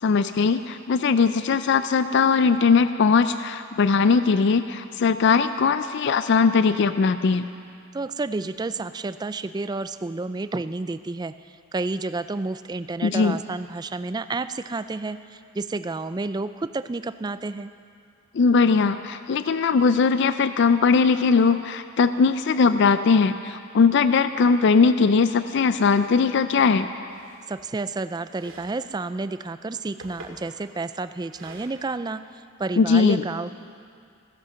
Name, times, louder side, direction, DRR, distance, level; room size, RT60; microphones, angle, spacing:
voice 1, 0.0-7.5 13.0-13.4 18.3-26.9 32.8-33.2, left 5 dB, 55° left, 11 dB, 0.4 m, -20 dB
voice 2, 7.9-17.7 27.5-33.5, right 3 dB, 20° right, 12 dB, 0.3 m, -30 dB
sound 1, 24.9-25.0 25.7-26.2 27.0-27.7 28.3-28.8 29.7-30.5 31.3-31.7, right 2 dB, 65° right, 2.1 m, -46 dB
15.5 x 10.5 x 6.7 m, 2.3 s
head